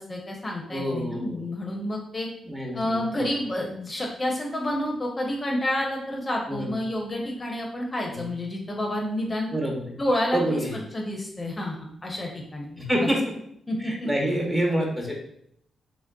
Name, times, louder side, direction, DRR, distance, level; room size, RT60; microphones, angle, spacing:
voice 1, 0.0-2.3 2.7-9.5 10.0-10.6 10.9-13.1 13.7-14.1, left 1 dB, 30° left, 0 dB, 0.6 m, -29 dB
voice 2, 0.7-1.4 2.4-3.3 6.5-6.7 8.1-8.3 9.5-9.9 10.3-10.8 12.8-13.2 13.8-15.2, equal, 10° right, -1 dB, 0.8 m, -27 dB
3.1 x 2.5 x 2.2 m, 0.71 s
cardioid pair, 65°, 0 cm